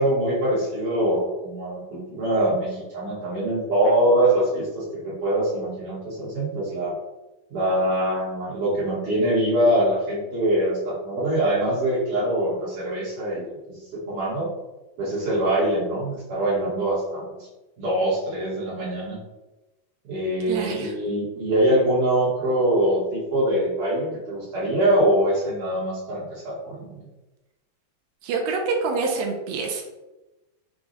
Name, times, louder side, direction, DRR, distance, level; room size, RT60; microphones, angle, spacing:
voice 1, 0.0-7.0 7.5-14.5 15.0-17.2 17.8-19.2 20.0-27.0, right 1 dB, 65° right, -8 dB, 2.4 m, -23 dB
voice 2, 20.5-20.9 28.2-29.8, right 4 dB, 80° right, 2 dB, 2.1 m, -26 dB
6.0 x 2.3 x 2.6 m, 1.1 s
omnidirectional pair, 4.2 m